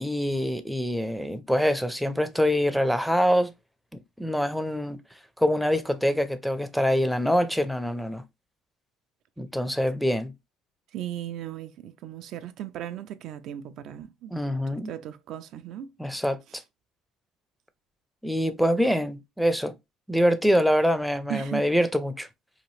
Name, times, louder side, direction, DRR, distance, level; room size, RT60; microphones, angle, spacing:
voice 1, 0.0-3.5 4.2-5.0 5.4-8.2 9.4-10.3 14.3-14.9 16.0-16.4 18.2-19.7 20.1-22.3, equal, ahead, 0.4 m, -24 dB
voice 2, 10.9-14.3 14.9-15.9 16.5-16.6 21.3-21.7, right 11 dB, 65° right, 0.3 m, -36 dB
2.8 x 2.4 x 3.0 m
supercardioid pair, 100°, 0 cm